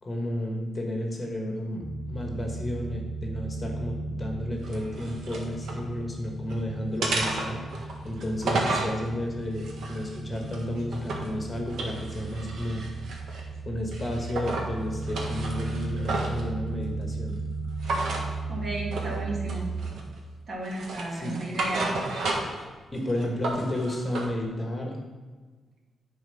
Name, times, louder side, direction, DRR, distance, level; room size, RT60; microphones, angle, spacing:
voice 1, 0.0-7.6 8.0-12.8 13.7-17.4 21.1-21.4 22.9-25.0, left 1 dB, 25° left, 1 dB, 1.4 m, -32 dB
sound 1, 1.8-19.9, right 3 dB, 10° right, 0.4 m, -36 dB
sound 2, 4.6-5.8 6.2-6.6 7.0-9.0 9.5-11.3 11.7-13.5 13.9-14.7 15.0-16.4 17.8-18.3 18.9-19.2 19.5-20.2 20.6-22.6 23.0-24.3, right 2 dB, 75° right, 1.6 m, -32 dB
voice 2, 18.5-19.7 20.5-21.9, right 2 dB, 45° right, -2 dB, 2.0 m, -33 dB
9.8 x 4.4 x 5.8 m, 1.4 s
cardioid pair, 130°, 0 cm